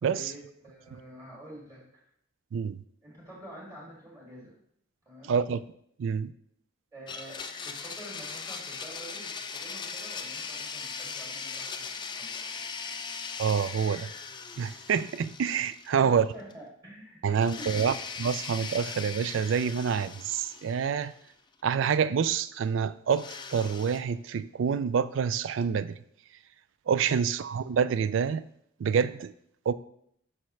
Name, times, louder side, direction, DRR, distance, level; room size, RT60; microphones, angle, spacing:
voice 1, 0.0-1.8 3.0-4.5 5.1-5.4 6.9-11.8 12.1-13.0 15.9-17.9, equal, 20° right, 2.5 m, -48 dB
voice 2, 2.5-2.8 5.3-5.6 6.0-6.3 13.4-14.1 14.6-16.3 17.2-17.9 18.2-21.1 21.6-26.0 26.9-28.4 28.8-29.3 29.7-29.8, right 7 dB, 70° right, 0.3 m, -27 dB
Domestic sounds home sounds, 7.1-16.2 16.5-16.6 17.4-21.3 23.1-24.0, left 5 dB, 25° left, 0.4 m, -39 dB
8.6 x 5.8 x 3.2 m
head